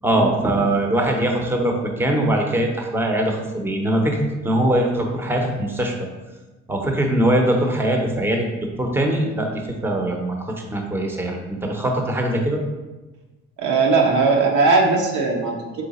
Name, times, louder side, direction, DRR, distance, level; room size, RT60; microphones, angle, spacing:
voice 1, 0.0-6.0 6.7-8.5 8.8-9.5 9.8-12.6, right 1 dB, 10° right, 2 dB, 0.6 m, -21 dB
voice 2, 13.6-15.8, right 4 dB, 80° right, 0 dB, 0.9 m, -19 dB
3.9 x 3.2 x 4.1 m, 1.2 s
cardioid pair, 90°, 30 cm